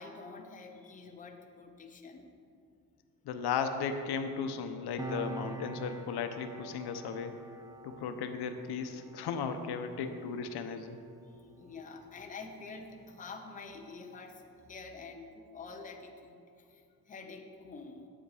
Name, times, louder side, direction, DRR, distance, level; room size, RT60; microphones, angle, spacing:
voice 1, 0.0-2.3 11.3-14.4 14.7-18.1, left 4 dB, 20° left, 3 dB, 0.7 m, -47 dB
voice 2, 3.2-7.4 7.8-11.0, left 6 dB, 85° left, 7 dB, 0.8 m, -36 dB
Piano, 5.0-12.0 12.3-12.5, right 3 dB, 10° right, 0.4 m, -46 dB
9.9 x 7.9 x 4.9 m, 2.4 s
cardioid pair, 155°, 38 cm